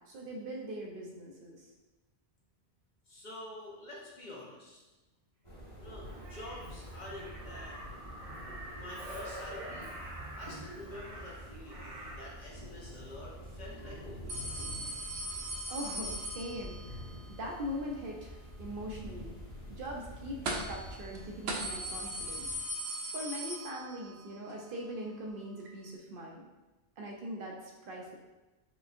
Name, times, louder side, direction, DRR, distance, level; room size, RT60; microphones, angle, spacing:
voice 1, 0.1-1.7 15.7-19.4 19.7-22.5 23.1-26.5 27.0-28.2, equal, 65° right, -1 dB, 0.7 m, -41 dB
voice 2, 3.1-4.8 5.8-7.8 8.6-9.9 10.4-14.7, left 1 dB, 50° left, -4 dB, 0.8 m, -47 dB
sound 1, 5.4-22.6, equal, 30° left, 1.3 m, -47 dB
Crow, 6.0-12.4 13.8-14.0, right 1 dB, 35° right, 1.2 m, -46 dB
sound 2, 14.3-17.0 20.5-20.9 21.1-21.2 21.5-24.2 24.5-24.6 25.7-25.8, right 1 dB, 85° right, 0.9 m, -38 dB
4.8 x 2.6 x 2.5 m, 1.1 s
omnidirectional pair, 1.1 m